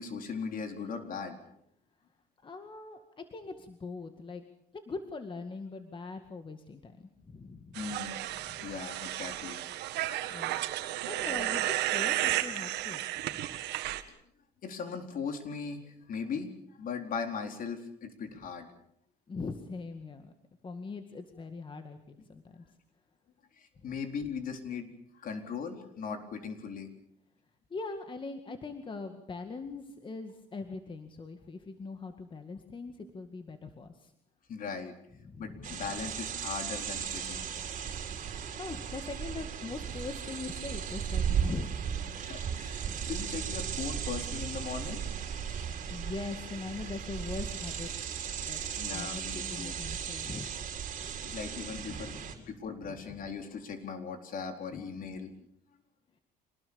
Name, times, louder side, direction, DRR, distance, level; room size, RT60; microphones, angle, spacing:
voice 1, 0.0-1.4 7.7-8.1 8.6-9.6 14.6-16.5 16.8-18.7 23.6-26.9 34.5-34.9 35.4-37.5 42.2-45.0 48.8-49.7 51.2-52.2 52.5-55.3, left 5 dB, 55° left, 5 dB, 4.1 m, -39 dB
voice 2, 2.4-4.4 4.9-7.8 8.3-8.7 10.3-13.5 19.3-20.3 20.6-22.6 23.8-23.9 27.7-34.1 35.2-35.9 38.3-41.7 45.9-47.9 48.4-48.6 48.9-50.5 51.7-52.4 52.8-53.3 54.7-54.8, left 4 dB, 30° left, 7 dB, 2.1 m, -42 dB
sound 1, 7.7-14.0, right 14 dB, 85° right, 1.8 m, -33 dB
sound 2, 35.6-52.3, right 7 dB, 50° right, 4.3 m, -36 dB
26.5 x 19.5 x 7.1 m, 0.73 s
cardioid pair, 110°, 17 cm